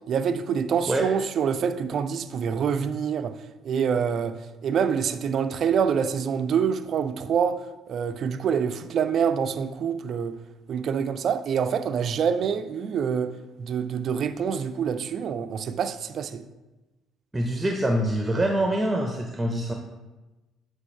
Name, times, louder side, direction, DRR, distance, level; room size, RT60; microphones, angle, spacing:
voice 1, 0.1-3.4 3.6-4.4 4.6-10.4 10.7-13.3 13.6-16.5, right 7 dB, 50° right, 0.4 m, -26 dB
voice 2, 17.3-19.7, right 1 dB, 15° right, 0.7 m, -25 dB
8.3 x 4.7 x 3.2 m
figure-of-eight pair, 50°, 0 cm